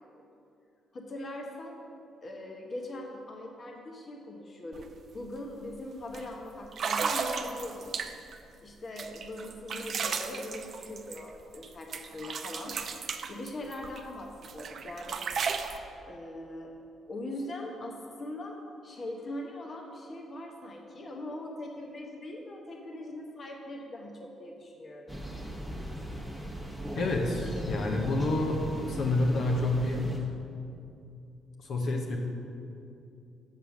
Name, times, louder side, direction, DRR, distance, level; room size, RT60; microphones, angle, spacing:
voice 1, 0.9-1.8 2.2-4.9 5.1-8.0 8.6-12.8 13.3-15.2 16.0-16.7 17.1-18.5 18.8-25.2, left 1 dB, 40° left, 1 dB, 1.0 m, -41 dB
sound 1, 4.7-4.9 5.2-5.5 6.1-6.2 6.7-8.4 9.0-11.7 11.9-14.0 14.4-15.8, right 5 dB, 55° right, 0.5 m, -34 dB
Thunder, 25.1-30.2, equal, 5° left, 1.3 m, -38 dB
voice 2, 26.9-30.2 31.6-32.2, left 2 dB, 65° left, 1 dB, 1.0 m, -28 dB
7.4 x 5.6 x 6.3 m, 2.6 s
cardioid pair, 90°, 0 cm